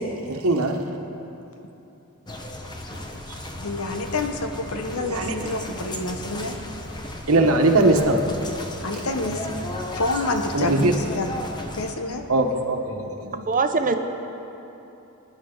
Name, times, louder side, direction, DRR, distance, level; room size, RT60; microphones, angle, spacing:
voice 1, 0.3-0.8 3.3-3.4 4.9-5.4 7.3-8.3 10.5-10.9 12.3-13.4, right 2 dB, 75° right, 4 dB, 1.2 m, -21 dB
sound 1, 2.3-11.9, left 1 dB, 20° left, 1.0 m, -35 dB
voice 2, 3.5-6.6 8.8-9.6 9.9-11.3 11.7-12.2, left 2 dB, 75° left, 5 dB, 1.0 m, -28 dB
voice 3, 13.3-13.9, right 4 dB, 40° right, 7 dB, 0.8 m, -22 dB
23.0 x 11.0 x 3.9 m, 3.0 s
head